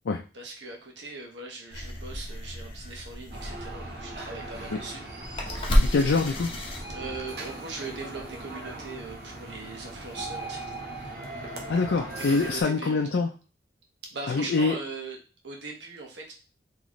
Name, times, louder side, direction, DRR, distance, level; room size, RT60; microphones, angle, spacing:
voice 1, 0.3-5.0 6.9-10.8 11.8-12.0 12.3-13.0 14.0-15.2 15.4-16.3, right 3 dB, 90° right, 0 dB, 1.1 m, -40 dB
sound 1, 1.7-7.4, equal, 30° left, 0.8 m, -30 dB
sound 2, 3.3-12.6, right 2 dB, 65° right, 0.9 m, -39 dB
voice 2, 5.8-6.5 11.7-13.3 14.3-14.8, left 4 dB, 85° left, 2 dB, 0.4 m, -25 dB
4.0 x 3.1 x 3.0 m, 0.34 s
head